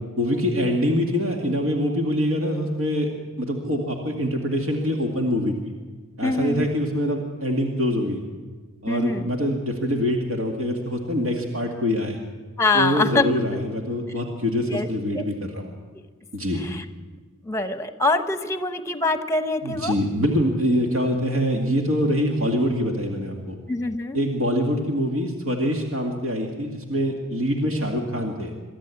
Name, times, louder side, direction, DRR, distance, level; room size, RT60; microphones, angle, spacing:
voice 1, 0.2-3.1 3.4-5.7 6.2-8.2 8.8-12.2 12.7-15.7 16.3-16.7 19.6-23.6 24.1-28.5, equal, 70° right, 1 dB, 2.1 m, -24 dB
voice 2, 6.2-6.7 8.9-9.3 12.6-13.2 14.7-14.9 15.1-15.2 16.5-16.8 17.4-19.9 23.7-24.2, left 3 dB, 15° left, 9 dB, 0.9 m, -24 dB
24.0 x 13.0 x 8.5 m, 1.4 s
head